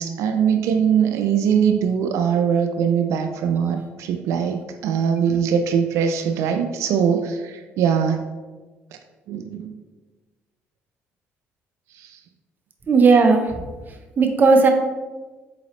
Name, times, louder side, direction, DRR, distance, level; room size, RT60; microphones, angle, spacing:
voice 1, 0.0-8.2 9.3-9.8 11.9-12.2, right 7 dB, 75° right, 6 dB, 0.3 m, -21 dB
voice 2, 12.9-13.6 14.2-14.7, right 4 dB, 40° right, 4 dB, 0.6 m, -15 dB
4.0 x 3.8 x 3.0 m, 1.3 s
supercardioid pair, 85°, 5 cm